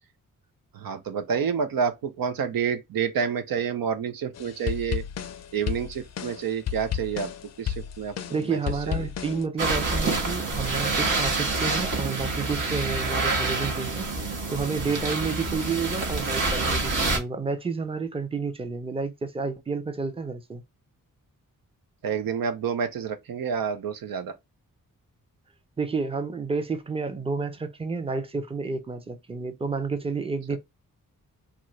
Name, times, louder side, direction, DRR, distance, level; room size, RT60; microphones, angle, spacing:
voice 1, 0.7-5.0 5.5-7.3 7.6-8.6 8.9-9.1 22.0-24.3, right 7 dB, 80° right, 0.6 m, -29 dB
sound 1, 4.3-9.4, left 9 dB, 50° left, 0.4 m, -33 dB
voice 2, 8.3-20.6 25.8-30.6, right 4 dB, 15° right, 0.6 m, -30 dB
sound 2, 9.6-17.2, right 3 dB, 65° right, 1.3 m, -27 dB
2.9 x 2.4 x 3.1 m
cardioid pair, 80°, 34 cm